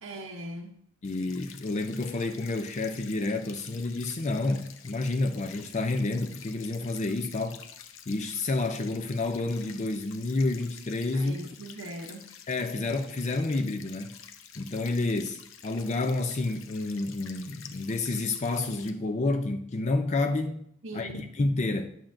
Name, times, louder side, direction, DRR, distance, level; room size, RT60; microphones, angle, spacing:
voice 1, 0.0-0.8 11.1-12.3 20.8-21.3, right 1 dB, 75° right, 0.8 m, -40 dB
sound 1, 1.0-18.9, left 8 dB, 70° left, 0.7 m, -49 dB
voice 2, 1.0-7.6 8.1-11.4 12.5-14.1 14.6-20.7 20.9-22.0, left 2 dB, 35° left, 0.5 m, -29 dB
11.0 x 7.2 x 2.6 m
head